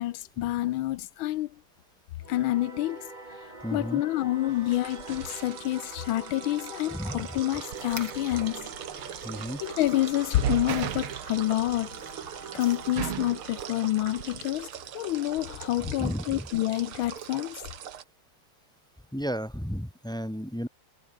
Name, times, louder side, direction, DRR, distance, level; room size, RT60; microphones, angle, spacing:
voice 1, 0.0-1.5 2.3-3.1 3.7-8.7 9.6-12.0 12.5-14.7 14.9-17.6, left 15 dB, 80° left, 1.4 m, -28 dB
Singing / Musical instrument, 2.2-15.1, right 2 dB, 20° right, 2.9 m, -46 dB
voice 2, 3.6-4.0 6.9-7.4 9.2-9.6 15.8-16.5 19.1-20.7, equal, 5° left, 0.6 m, -33 dB
sound 1, 4.5-18.0, right 9 dB, 85° right, 2.3 m, -38 dB
sound 2, 7.7-13.3, right 4 dB, 65° right, 5.2 m, -49 dB
omnidirectional pair, 2.3 m